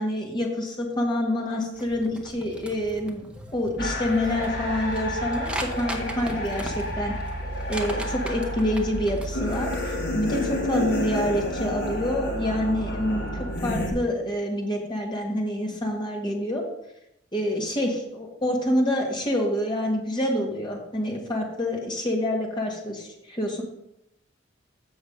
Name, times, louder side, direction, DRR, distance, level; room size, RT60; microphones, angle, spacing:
voice 1, 0.0-3.2 3.5-7.1 7.7-13.3 13.6-16.6 17.3-23.6, left 1 dB, 25° left, 0 dB, 1.6 m, -27 dB
sound 1, 1.7-9.9, equal, 5° right, 0.8 m, -39 dB
sound 2, 3.8-13.9, equal, 55° left, 1.6 m, -30 dB
6.9 x 6.3 x 5.1 m, 0.81 s
head